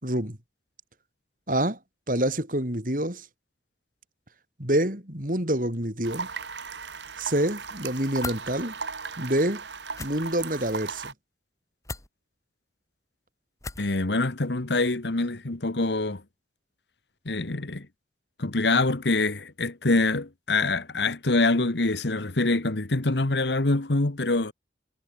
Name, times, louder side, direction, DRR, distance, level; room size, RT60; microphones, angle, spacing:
voice 1, 0.0-0.4 1.5-1.8 2.1-3.2 4.6-6.3 7.2-8.7 9.2-9.6 10.0-11.1, right 1 dB, 50° right, 5.5 m, -27 dB
sound 1, 6.0-11.1, right 5 dB, 90° right, 2.2 m, -37 dB
sound 2, 8.2-8.4 9.9-10.1 11.8-12.1 13.6-13.9, left 3 dB, 20° left, 4.7 m, -36 dB
voice 2, 13.8-16.2 17.2-17.9 18.4-24.5, left 2 dB, 80° left, 1.4 m, -25 dB
head